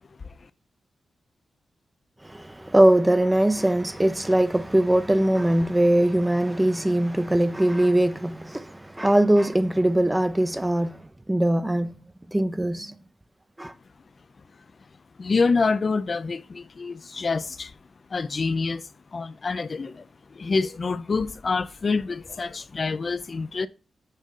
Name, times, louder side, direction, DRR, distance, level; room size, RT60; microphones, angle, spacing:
voice 1, 2.2-11.0 11.3-12.0 12.3-13.0 13.6-13.7, right 1 dB, 15° right, 0.5 m, -21 dB
voice 2, 15.2-17.7 18.1-23.7, left 4 dB, 50° left, 0.4 m, -27 dB
6.4 x 4.1 x 3.7 m
cardioid pair, 55°, 0 cm